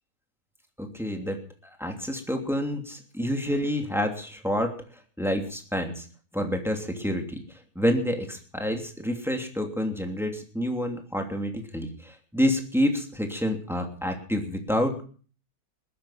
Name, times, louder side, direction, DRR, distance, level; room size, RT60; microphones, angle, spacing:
voice 1, 0.8-4.7 5.2-6.1 6.3-7.4 7.7-15.0, equal, ahead, 3 dB, 2.9 m, -28 dB
21.0 x 10.5 x 5.9 m, 0.41 s
omnidirectional pair, 1.7 m